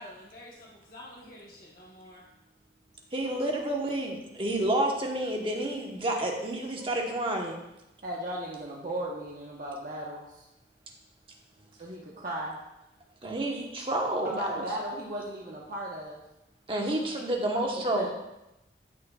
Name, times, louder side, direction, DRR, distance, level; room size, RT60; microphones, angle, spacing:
voice 1, 0.0-2.2 6.8-6.9, left 1 dB, 50° left, -5 dB, 1.1 m, -48 dB
voice 2, 3.1-7.6 13.2-14.6 16.7-18.1, right 1 dB, 30° right, 0 dB, 1.1 m, -29 dB
voice 3, 8.0-10.4 11.8-12.6 14.2-16.2 17.8-18.1, right 1 dB, 50° right, -4 dB, 1.1 m, -36 dB
13.0 x 6.3 x 2.3 m, 0.91 s
head